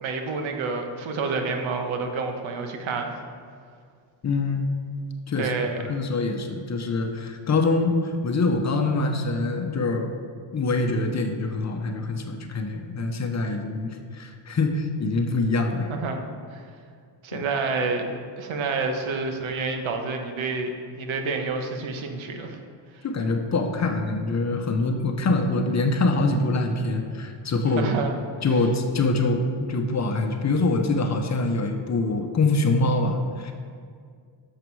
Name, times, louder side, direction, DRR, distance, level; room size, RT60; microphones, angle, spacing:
voice 1, 0.0-3.2 5.4-5.8 15.9-16.2 16.5-16.7 17.2-18.1 18.4-22.6 27.7-28.1 28.5-28.6, right 4 dB, 80° right, 4 dB, 1.3 m, -28 dB
voice 2, 4.2-4.7 5.3-5.5 5.8-7.9 8.2-10.2 10.5-15.9 17.3-17.4 23.0-27.9 28.4-33.5, left 3 dB, 35° left, 4 dB, 0.8 m, -24 dB
11.5 x 6.7 x 4.7 m, 2.1 s
cardioid pair, 145°, 46 cm